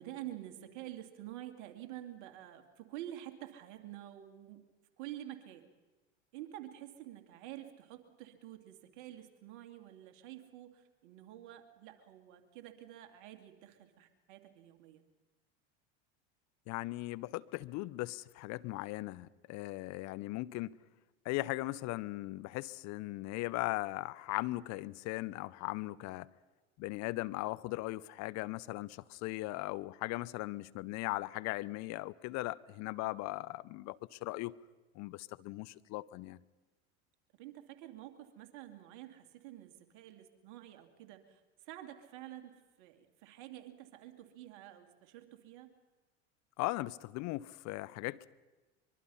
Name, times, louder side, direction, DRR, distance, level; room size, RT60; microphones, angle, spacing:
voice 1, 0.0-4.6 5.0-5.7 6.3-15.0 37.4-45.7, right 13 dB, 60° right, 2.6 m, -49 dB
voice 2, 16.7-20.8 21.2-26.3 26.8-34.6 35.0-36.4 46.6-48.3, left 19 dB, 50° left, 0.8 m, -38 dB
24.0 x 23.0 x 5.7 m
hypercardioid pair, 90°, 34 cm